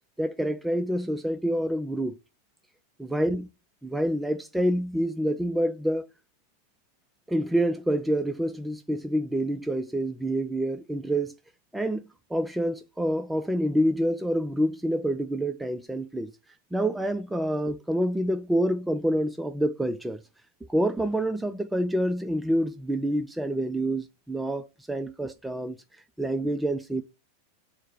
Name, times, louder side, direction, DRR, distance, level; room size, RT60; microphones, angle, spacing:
voice 1, 0.2-2.1 3.0-3.5 3.8-6.1 7.3-11.3 11.7-12.0 12.3-16.3 16.7-20.2 20.7-25.8 26.2-27.0, right 1 dB, 5° right, 0.3 m, -27 dB
4.3 x 2.0 x 4.5 m
hypercardioid pair, 90°, 0 cm